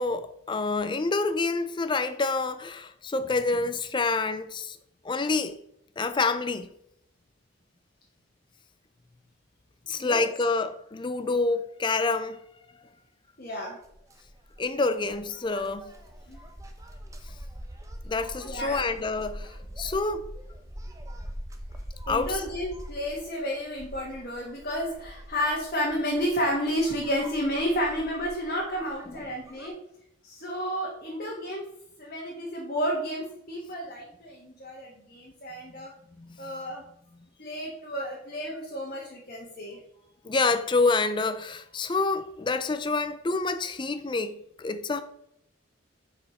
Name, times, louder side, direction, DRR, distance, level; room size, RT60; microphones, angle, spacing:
voice 1, 0.0-4.8 5.0-5.6 6.0-6.7 9.9-12.4 14.6-15.9 18.1-20.3 22.1-22.4 36.2-36.5 40.2-45.0, left 3 dB, 25° left, 0.4 m, -27 dB
voice 2, 13.4-13.8 16.3-16.4 18.4-18.9 22.1-29.7 30.2-31.6 32.0-35.9 36.4-36.8 37.4-39.8, equal, 45° left, 1.4 m, -31 dB
sound 1, 13.8-29.7, equal, 15° right, 0.7 m, -43 dB
7.2 x 4.9 x 5.0 m
head